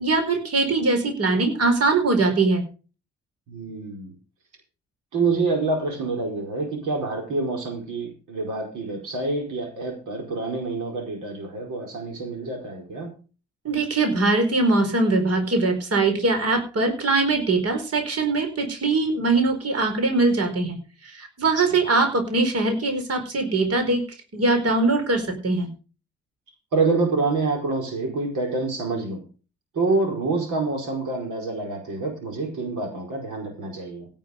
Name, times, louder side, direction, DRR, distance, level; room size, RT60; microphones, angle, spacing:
voice 1, 0.0-2.6 13.6-24.0 24.3-25.7, right 3 dB, 50° right, 5 dB, 4.6 m, -22 dB
voice 2, 3.5-4.1 5.1-13.1 21.7-21.8 26.7-29.2 29.7-34.1, right 3 dB, 65° right, 3 dB, 4.8 m, -27 dB
17.5 x 7.2 x 5.1 m, 0.34 s
hypercardioid pair, 45°, 32 cm